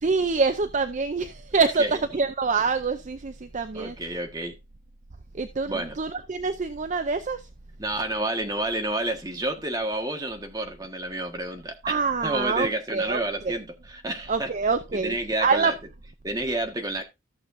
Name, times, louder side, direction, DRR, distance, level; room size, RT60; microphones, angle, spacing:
voice 1, 0.0-4.0 5.3-7.5 11.8-13.6 14.3-15.7, right 4 dB, 35° right, 0.5 m, -26 dB
voice 2, 3.7-4.6 5.7-6.0 7.8-12.0 12.2-14.5 14.9-15.7 16.2-17.0, right 1 dB, 20° right, 1.6 m, -29 dB
14.0 x 6.9 x 2.6 m
head